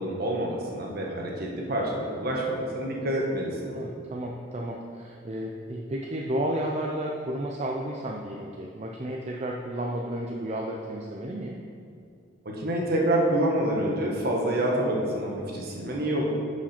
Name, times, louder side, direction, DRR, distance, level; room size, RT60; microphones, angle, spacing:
voice 1, 0.0-3.7 12.4-16.2, right 1 dB, 55° right, -2 dB, 1.4 m, -27 dB
voice 2, 3.7-11.6, right 1 dB, 35° right, -1 dB, 0.5 m, -32 dB
11.0 x 5.0 x 4.4 m, 2.5 s
head